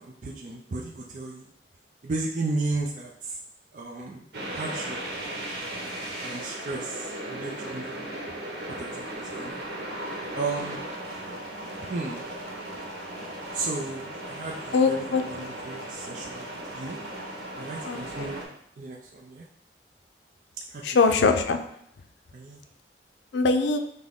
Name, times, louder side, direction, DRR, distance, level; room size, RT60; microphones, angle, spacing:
voice 1, 0.0-1.5 2.0-3.4 3.7-5.0 6.2-8.1 8.7-9.6 10.4-10.8 11.8-12.2 13.5-17.0 17.5-18.5 18.8-19.4 20.7-21.0 22.3-22.6, right 3 dB, 45° right, -2 dB, 0.4 m, -34 dB
sound 1, 4.3-18.5, right 1 dB, 70° right, 1.0 m, -37 dB
voice 2, 14.7-15.4 17.9-18.0 20.8-21.6 23.3-23.8, left 4 dB, 85° left, 7 dB, 0.4 m, -22 dB
6.0 x 2.1 x 3.5 m, 0.70 s
head